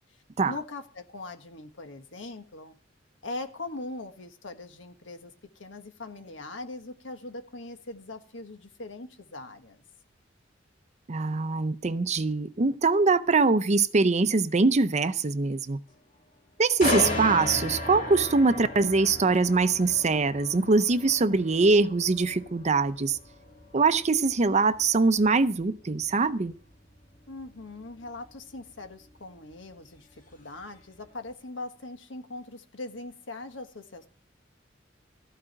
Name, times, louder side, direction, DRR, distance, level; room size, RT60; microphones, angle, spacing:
voice 1, 0.5-2.8 3.2-9.8 27.3-34.1, left 2 dB, 80° left, 1.4 m, -41 dB
voice 2, 11.1-15.8 16.6-23.2 23.7-26.5, right 3 dB, 35° right, 0.6 m, -23 dB
sound 1, 16.8-30.6 31.1-31.3, left 2 dB, 45° left, 2.1 m, -36 dB
15.0 x 5.0 x 8.8 m
head